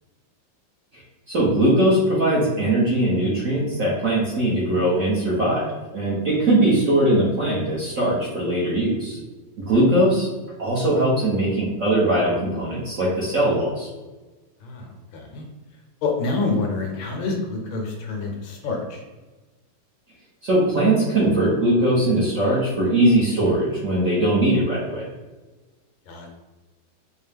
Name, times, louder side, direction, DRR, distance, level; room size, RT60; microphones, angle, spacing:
voice 1, 1.3-9.2 9.7-10.3 10.6-13.9 20.4-25.0, right 1 dB, 55° right, -6 dB, 0.9 m, -20 dB
voice 2, 14.6-15.4 16.0-19.0 26.1-26.3, left 3 dB, 75° left, 1 dB, 1.5 m, -27 dB
4.6 x 2.1 x 3.4 m, 1.2 s
omnidirectional pair, 2.2 m